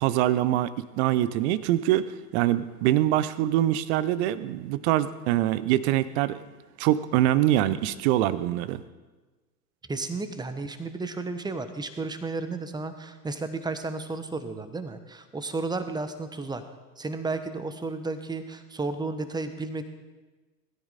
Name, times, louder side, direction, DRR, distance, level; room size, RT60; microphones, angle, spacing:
voice 1, 0.0-6.4 6.8-8.8, right 13 dB, 40° right, 16 dB, 0.9 m, -24 dB
voice 2, 9.8-16.6 17.0-19.8, right 3 dB, 10° right, 10 dB, 1.2 m, -33 dB
20.0 x 13.5 x 4.2 m, 1.3 s
figure-of-eight pair, 95°, 50 cm